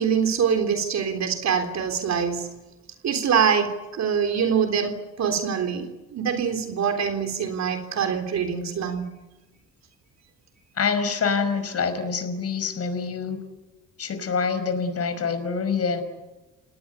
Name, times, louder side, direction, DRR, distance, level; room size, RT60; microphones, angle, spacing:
voice 1, 0.0-2.5 3.0-9.1, right 7 dB, 65° right, 5 dB, 3.6 m, -24 dB
voice 2, 10.8-13.4 14.0-16.0, left 5 dB, 55° left, 9 dB, 5.4 m, -26 dB
30.0 x 19.0 x 8.4 m, 1.1 s
cardioid pair, 90°, 30 cm